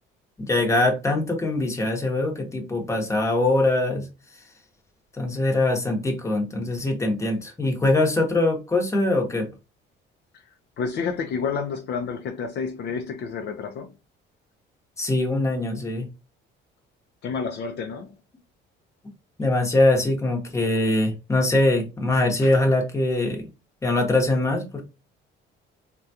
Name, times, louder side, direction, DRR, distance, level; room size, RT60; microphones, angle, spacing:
voice 1, 0.4-4.1 5.2-9.5 15.0-16.1 19.4-23.5 23.8-24.8, left 2 dB, 15° left, 0.9 m, -22 dB
voice 2, 10.8-13.9 17.2-18.1 22.4-22.6, left 5 dB, 55° left, 0.5 m, -30 dB
3.5 x 2.3 x 2.7 m
cardioid pair, 115°, 21 cm